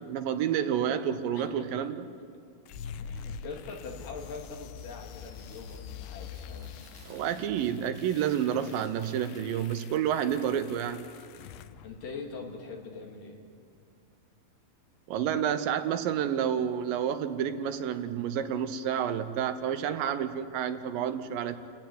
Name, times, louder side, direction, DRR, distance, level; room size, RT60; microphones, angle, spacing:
voice 1, 0.0-2.1 7.1-11.1 15.1-21.6, right 9 dB, 75° right, 10 dB, 2.4 m, -29 dB
voice 2, 1.3-1.7 3.0-6.7 11.8-13.4, left 4 dB, 65° left, 1 dB, 3.8 m, -42 dB
sound 1, 2.7-12.6, left 7 dB, 80° left, 2.5 m, -45 dB
Crumpling crinkling, 5.1-10.3, right 3 dB, 50° right, 4.0 m, -58 dB
29.5 x 14.0 x 9.3 m, 2.3 s
omnidirectional pair, 4.3 m